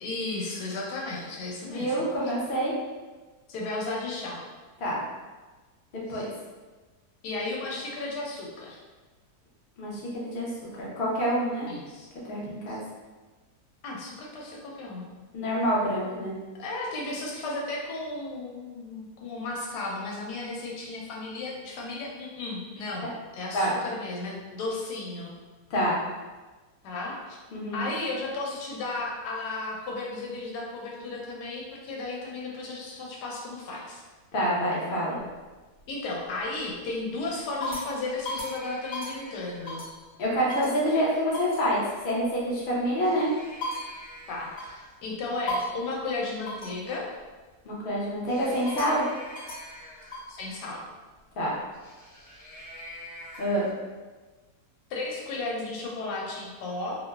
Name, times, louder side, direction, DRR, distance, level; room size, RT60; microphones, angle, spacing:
voice 1, 0.0-1.9 2.2-2.3 3.5-4.4 6.1-6.3 7.2-8.8 11.7-12.1 12.7-12.8 13.8-15.1 16.5-23.1 23.3-25.3 26.8-27.4 27.7-34.0 35.9-39.8 44.3-47.0 50.3-50.8 54.9-57.0, left 2 dB, 90° left, -3 dB, 1.2 m, -34 dB
voice 2, 1.6-2.7 4.8-5.0 6.1-6.3 9.8-10.5 10.8-11.7 12.3-12.8 15.3-16.3 23.5-23.7 25.7-26.0 27.5-27.9 34.3-35.2 40.2-43.3 47.6-49.0 51.4-51.5 53.4-53.7, equal, 60° left, -5 dB, 0.5 m, -27 dB
sound 1, 35.2-35.9 36.4-36.8 37.3-40.1 40.5-40.8 41.3-41.7 42.8-45.0 45.5-45.9 46.5-46.8 48.3-50.4 51.7-53.7, left 1 dB, 40° left, 1.2 m, -38 dB
3.0 x 2.1 x 2.2 m, 1.3 s
omnidirectional pair, 1.7 m